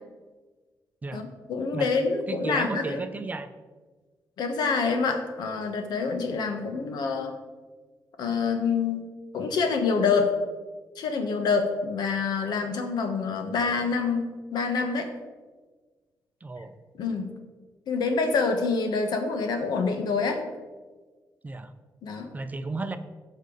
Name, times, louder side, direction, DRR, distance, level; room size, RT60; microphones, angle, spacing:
voice 1, 1.1-3.0 4.4-7.4 8.2-9.1 9.3-10.3 10.9-15.1 17.0-17.3 17.9-20.4 22.0-22.3, left 4 dB, 80° left, 5 dB, 1.3 m, -26 dB
voice 2, 2.3-3.5 16.4-16.7 21.4-21.7 22.3-23.0, right 3 dB, 25° right, 9 dB, 0.6 m, -33 dB
14.5 x 5.3 x 3.9 m, 1.4 s
cardioid pair, 105°, 7 cm